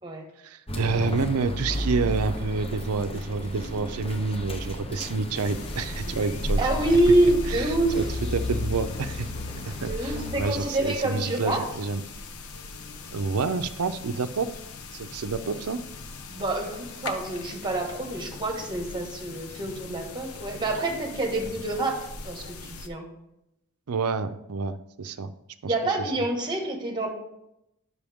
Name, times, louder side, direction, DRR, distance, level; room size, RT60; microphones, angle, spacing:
voice 1, 0.4-6.6 7.5-9.3 9.7-12.0 13.1-14.5 14.9-15.8 23.9-25.3 25.6-25.7, right 4 dB, 85° right, 11 dB, 0.6 m, -28 dB
sound 1, 0.7-10.3, left 1 dB, 25° left, 0.8 m, -33 dB
sound 2, 5.3-22.9, left 2 dB, 80° left, 0.7 m, -39 dB
voice 2, 6.6-8.0 9.8-11.6 16.3-22.0 22.2-23.0 25.7-27.1, right 1 dB, 20° right, 2 dB, 1.5 m, -26 dB
9.9 x 6.6 x 3.5 m, 0.85 s
head